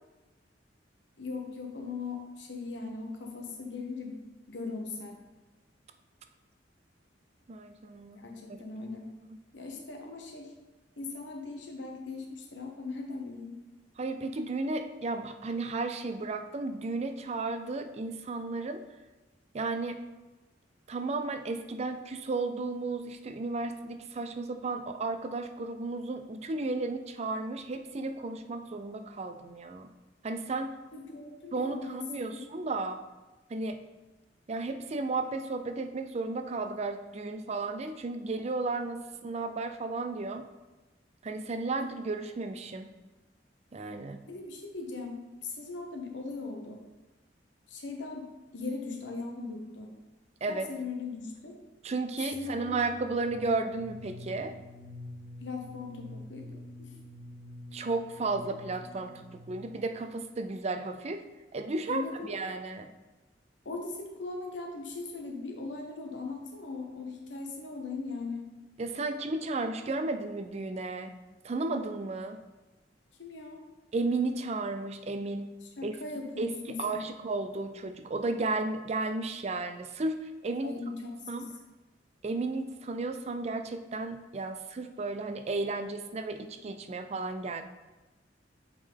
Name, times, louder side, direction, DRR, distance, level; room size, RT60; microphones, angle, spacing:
voice 1, 1.2-4.2 4.5-5.2 8.1-9.1 9.5-10.5 11.0-13.6 30.9-32.0 32.3-32.5 44.3-46.8 47.7-48.3 48.5-49.9 50.5-51.6 52.3-52.8 55.4-56.5 56.8-56.9 61.9-62.5 63.6-68.5 73.2-73.6 75.6-77.0 80.6-81.5, left 3 dB, 80° left, 2 dB, 1.1 m, -39 dB
voice 2, 7.5-8.2 8.5-8.6 14.0-18.8 19.5-20.0 20.9-29.9 30.2-30.7 31.5-33.0 33.5-33.8 34.5-40.4 41.2-42.9 43.7-44.2 50.4-50.7 51.8-54.5 57.7-61.2 61.5-62.9 68.8-71.2 71.4-72.4 73.9-75.5 75.8-76.0 76.4-80.7 81.3-81.5 82.2-87.6, right 3 dB, 35° right, 8 dB, 0.4 m, -33 dB
sound 1, 52.3-60.0, left 1 dB, 50° left, 0.5 m, -47 dB
8.1 x 3.8 x 3.6 m, 1.1 s
head